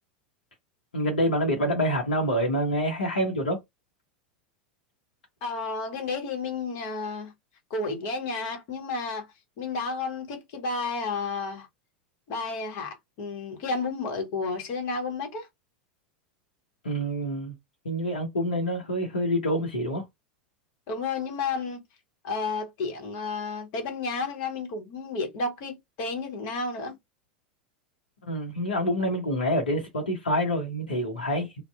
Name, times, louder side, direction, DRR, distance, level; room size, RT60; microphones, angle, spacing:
voice 1, 0.9-3.6 16.8-17.5 17.8-20.0 28.2-31.6, equal, 75° left, 0.8 m, -27 dB
voice 2, 5.4-7.3 7.7-11.7 12.3-15.5 20.9-21.8 22.2-27.0, left 4 dB, 50° left, 1.1 m, -32 dB
2.5 x 2.1 x 2.2 m
figure-of-eight pair, 85°, 5 cm